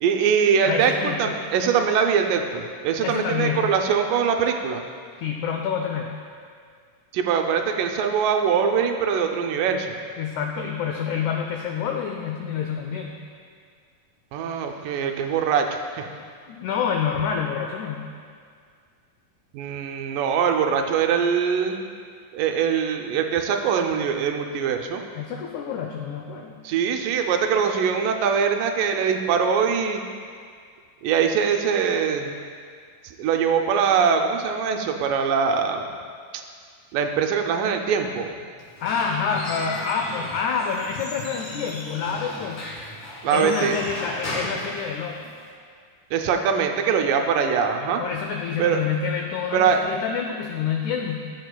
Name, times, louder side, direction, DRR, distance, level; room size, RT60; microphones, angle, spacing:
voice 1, 0.0-4.8 7.1-10.0 14.3-16.1 19.5-21.8 22.3-25.0 26.6-30.0 31.0-32.3 33.0-35.9 36.3-36.4 36.9-38.4 43.2-43.8 46.1-48.0 48.6-48.8 49.5-49.8, right 6 dB, 80° right, 4 dB, 2.1 m, -22 dB
voice 2, 0.7-1.2 3.0-3.7 5.2-6.1 10.2-13.2 16.1-18.1 25.1-26.6 38.8-42.7 43.3-45.3 48.0-51.3, left 6 dB, 90° left, 2 dB, 1.7 m, -28 dB
Squeak / Wood, 38.6-45.5, left 1 dB, 65° left, 3.0 m, -35 dB
14.0 x 7.9 x 2.2 m, 2.1 s
omnidirectional pair, 4.0 m